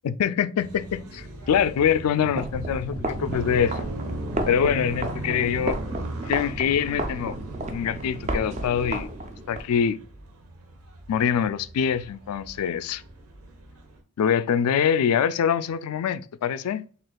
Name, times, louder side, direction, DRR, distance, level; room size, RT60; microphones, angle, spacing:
voice 1, 0.0-3.8 4.5-5.8 6.3-7.3 7.7-9.1 9.5-10.0 11.1-13.0 14.2-16.8, left 8 dB, 80° left, 0.3 m, -24 dB
sound 1, 0.6-14.0, right 2 dB, 75° right, 1.0 m, -39 dB
sound 2, 2.3-9.6, right 1 dB, 30° right, 0.4 m, -32 dB
6.2 x 2.4 x 2.2 m
head